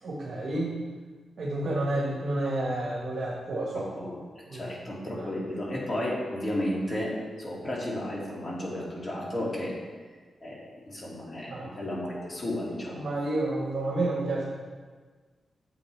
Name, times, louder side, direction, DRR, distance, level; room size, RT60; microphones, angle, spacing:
voice 1, 0.0-0.8 1.4-3.9 4.5-4.7 5.1-5.3 11.5-11.7 12.9-14.4, right 2 dB, 55° right, -4 dB, 1.6 m, -30 dB
voice 2, 3.7-4.2 4.5-9.7 10.4-13.0, left 1 dB, 35° left, -4 dB, 2.7 m, -33 dB
8.8 x 7.4 x 3.5 m, 1.5 s
cardioid pair, 90°, 0 cm